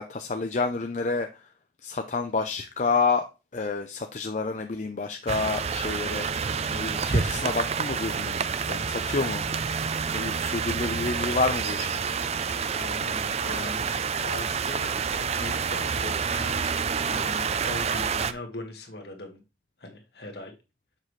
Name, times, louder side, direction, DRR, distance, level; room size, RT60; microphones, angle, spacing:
voice 1, 0.0-1.5 1.8-3.2 3.5-6.3 6.7-8.4 8.7-9.4 10.1-12.0, left 4 dB, 40° left, 0.5 m, -29 dB
sound 1, 5.3-18.3, right 6 dB, 35° right, 0.4 m, -28 dB
voice 2, 12.8-13.9 14.2-19.4 19.8-20.5, left 2 dB, 60° left, 1.8 m, -40 dB
7.4 x 5.9 x 3.2 m
head